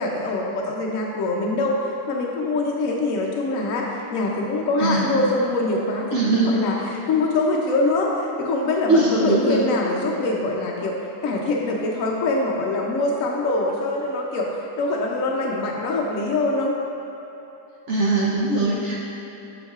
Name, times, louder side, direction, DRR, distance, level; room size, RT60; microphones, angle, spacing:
voice 1, 0.0-8.1 8.4-11.0 11.2-16.8, left 2 dB, 65° left, -2 dB, 0.9 m, -24 dB
voice 2, 6.1-6.6 8.9-9.6 17.9-19.0, right 2 dB, 60° right, -5 dB, 0.7 m, -20 dB
8.2 x 6.3 x 2.4 m, 3.0 s
omnidirectional pair, 1.8 m